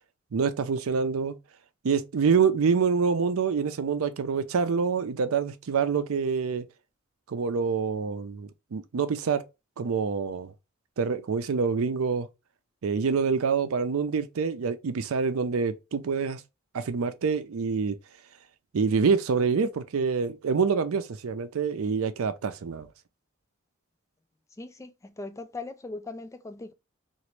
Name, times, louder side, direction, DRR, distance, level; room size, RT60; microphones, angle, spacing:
voice 1, 0.3-1.4 1.8-6.7 7.3-9.4 9.8-10.5 11.0-12.3 12.8-16.4 16.7-18.0 18.7-22.9, right 5 dB, 80° right, 0.5 m, -26 dB
voice 2, 24.6-26.7, left 3 dB, 15° left, 0.3 m, -39 dB
2.9 x 2.5 x 3.1 m
head